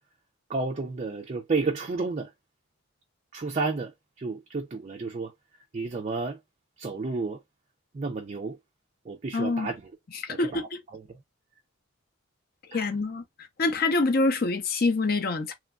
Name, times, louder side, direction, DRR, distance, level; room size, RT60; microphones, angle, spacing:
voice 1, 0.5-2.3 3.3-3.9 4.2-5.3 5.7-6.4 6.8-7.4 7.9-8.6 9.1-9.8 10.3-10.7 10.9-11.0 12.7-12.9, right 3 dB, 30° right, 0.3 m, -31 dB
voice 2, 9.3-9.7 10.1-10.8 12.7-13.2 13.6-15.5, left 3 dB, 45° left, 0.5 m, -26 dB
3.0 x 2.2 x 2.3 m
head